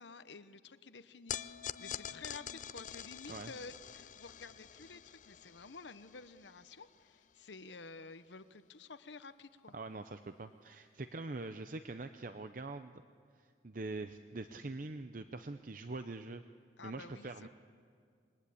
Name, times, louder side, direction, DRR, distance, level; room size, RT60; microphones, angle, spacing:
voice 1, 0.0-1.4 1.8-9.7 16.8-17.5, left 4 dB, 80° left, 12 dB, 0.9 m, -51 dB
sound 1, 1.3-7.7, left 9 dB, 45° left, 0.6 m, -46 dB
voice 2, 9.7-13.0 13.4-16.4 16.8-17.5, right 2 dB, 45° right, 9 dB, 0.7 m, -44 dB
27.5 x 21.5 x 8.6 m, 2.2 s
head